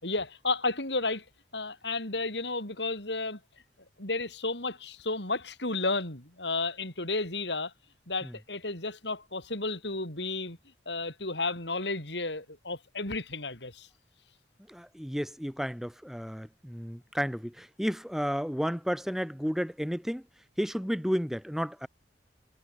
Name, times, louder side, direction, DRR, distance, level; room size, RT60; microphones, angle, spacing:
voice 1, 0.0-1.2 1.5-3.4 4.0-7.7 8.1-10.6 10.9-13.9, left 3 dB, 70° left, 6.4 m, -32 dB
voice 2, 14.7-20.2 20.6-21.9, equal, ahead, 1.9 m, -32 dB
head